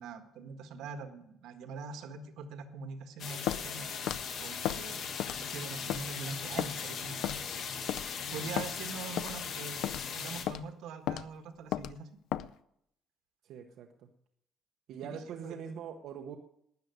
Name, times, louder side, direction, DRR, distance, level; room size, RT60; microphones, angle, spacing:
voice 1, 0.0-3.9 4.4-7.4 8.3-9.8 10.2-12.1 15.0-15.6, right 5 dB, 85° right, 7 dB, 1.7 m, -43 dB
sound 1, 3.2-10.4, left 6 dB, 55° left, 1.9 m, -39 dB
Walk footsteps, 3.5-3.7 4.1-4.2 4.6-4.8 5.2-5.5 5.9-6.0 6.6-6.7 7.2-7.5 7.9-8.1 8.6-8.7 9.2-9.4 9.8-10.1 10.5-10.6 11.1-11.2 11.7-11.9 12.3-12.5, left 11 dB, 85° left, 0.5 m, -33 dB
voice 2, 13.4-13.9 14.9-16.4, right 7 dB, 65° right, 3 dB, 1.1 m, -43 dB
13.0 x 9.4 x 9.4 m, 0.75 s
cardioid pair, 175°, 0 cm